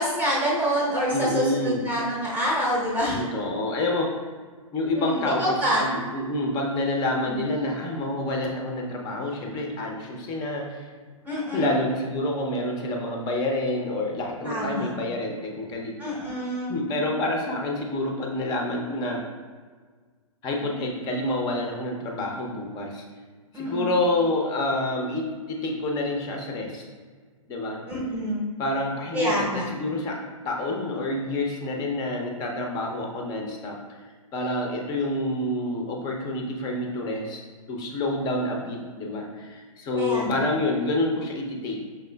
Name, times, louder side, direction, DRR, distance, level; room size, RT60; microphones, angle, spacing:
voice 1, 0.0-3.3 4.9-5.9 7.2-7.4 11.2-11.7 14.5-14.9 16.0-16.7 23.5-23.9 27.9-28.4 29.1-29.6 39.9-40.4, equal, 10° right, -5 dB, 0.8 m, -26 dB
voice 2, 1.1-1.8 3.1-4.1 4.7-10.9 11.5-15.9 16.7-19.2 20.4-23.0 23.6-26.8 27.5-27.8 28.6-30.2 30.4-33.8 34.3-37.4 37.7-41.8, left 1 dB, 25° left, 1 dB, 0.6 m, -28 dB
5.5 x 3.6 x 2.2 m, 1.6 s
figure-of-eight pair, 120°, 18 cm